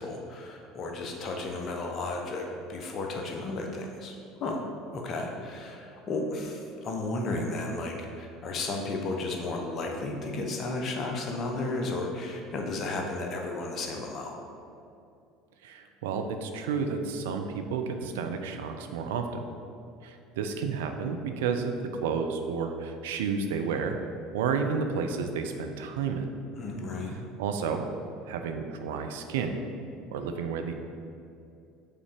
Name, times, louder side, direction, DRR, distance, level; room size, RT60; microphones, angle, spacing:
voice 1, 0.0-4.6 4.9-14.3 26.6-27.2, left 2 dB, 45° left, 2 dB, 1.0 m, -33 dB
voice 2, 15.6-19.5 20.0-24.0 24.3-26.3 27.4-27.9 28.3-29.6 30.1-30.7, right 5 dB, 70° right, 6 dB, 0.5 m, -31 dB
5.6 x 4.0 x 5.1 m, 2.5 s
hypercardioid pair, 70°, 0 cm